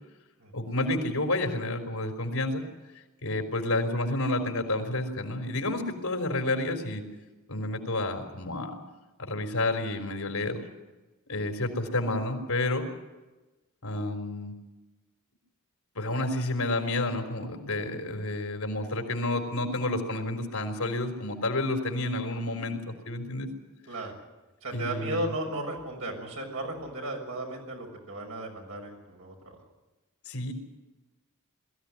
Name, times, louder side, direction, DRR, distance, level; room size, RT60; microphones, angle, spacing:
voice 1, 0.5-2.6 3.2-7.0 7.5-8.8 9.2-10.7 11.3-12.9 13.8-14.5 16.0-23.5 24.7-25.3 30.3-30.5, left 2 dB, 80° left, 4 dB, 4.0 m, -30 dB
voice 2, 23.9-24.2 24.6-29.6, right 1 dB, 70° right, 2 dB, 6.4 m, -35 dB
22.0 x 15.0 x 9.8 m, 1.1 s
head